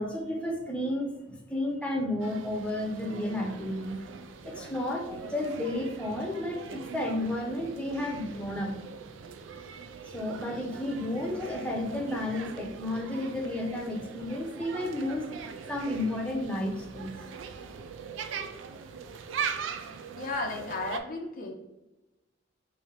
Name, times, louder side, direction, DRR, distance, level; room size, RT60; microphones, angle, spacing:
voice 1, 0.0-4.0 4.4-8.7 10.0-15.3 15.7-17.2, left 1 dB, 5° left, -1 dB, 0.7 m, -32 dB
sound 1, 2.2-21.0, right 6 dB, 85° right, 0.4 m, -41 dB
voice 2, 20.2-21.5, left 2 dB, 45° left, 2 dB, 0.5 m, -34 dB
4.6 x 2.7 x 3.3 m, 1.0 s
head